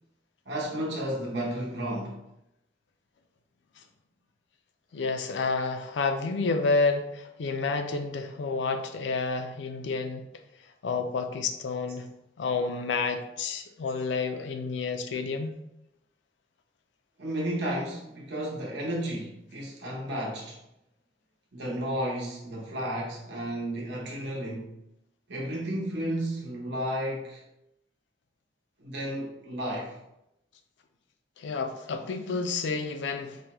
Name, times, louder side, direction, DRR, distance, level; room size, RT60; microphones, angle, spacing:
voice 1, 0.5-2.3 17.2-20.6 21.5-24.8 25.3-27.4 28.8-30.0, right 1 dB, 75° right, 0.8 m, -33 dB
voice 2, 4.9-10.3 10.8-12.1 12.4-15.6 31.4-33.4, left 4 dB, 90° left, 0.4 m, -29 dB
4.8 x 2.2 x 2.9 m
head